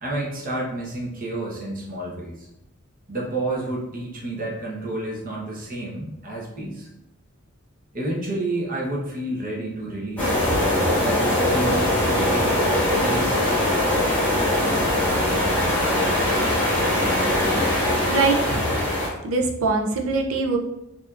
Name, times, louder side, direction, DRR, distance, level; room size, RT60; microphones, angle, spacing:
voice 1, 0.0-2.5 3.1-6.9 7.9-13.6, right 1 dB, 45° right, -3 dB, 1.1 m, -30 dB
sound 1, 10.2-19.1, left 1 dB, 10° left, 1.2 m, -21 dB
voice 2, 18.1-18.8 19.2-20.6, right 3 dB, 85° right, 3 dB, 0.6 m, -23 dB
5.0 x 2.8 x 2.5 m, 0.87 s
head